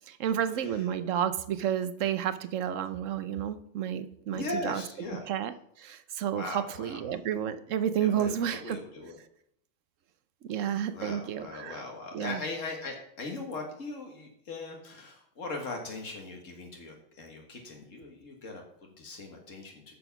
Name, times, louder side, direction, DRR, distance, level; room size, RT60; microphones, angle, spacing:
voice 1, 0.1-4.8 5.3-5.5 5.8-8.8 10.4-11.8 12.1-12.4, right 9 dB, 90° right, 11 dB, 1.1 m, -31 dB
voice 2, 4.3-5.3 6.3-7.0 8.0-9.2 10.5-10.7 10.9-19.9, left 3 dB, 85° left, 1 dB, 2.0 m, -39 dB
10.0 x 7.0 x 5.9 m, 0.71 s
omnidirectional pair, 1.3 m